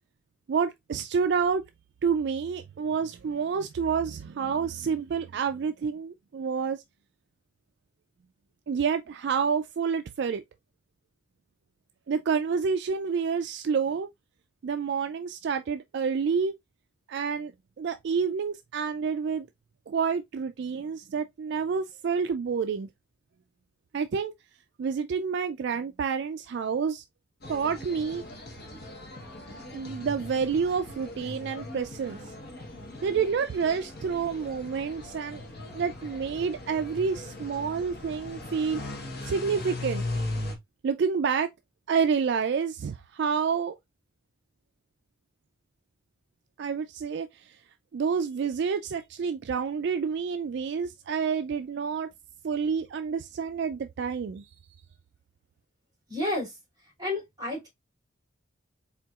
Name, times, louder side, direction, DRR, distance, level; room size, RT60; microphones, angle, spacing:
voice 1, 0.5-1.6 2.0-6.8 8.7-10.4 12.1-14.1 14.6-16.5 17.1-17.5 17.8-19.5 19.9-22.9 23.9-24.3 24.8-27.0 27.5-28.2 29.7-32.2 33.0-35.4 35.7-38.8 39.2-40.0 40.8-41.5 41.9-43.8 46.6-47.6 47.9-52.1 52.4-54.5, right 6 dB, 55° right, 0.3 m, -28 dB
sound 1, 27.4-40.6, left 2 dB, 50° left, 1.0 m, -39 dB
voice 2, 56.1-56.6 57.0-57.7, left 2 dB, 20° right, 2.7 m, -31 dB
4.4 x 3.7 x 2.3 m
head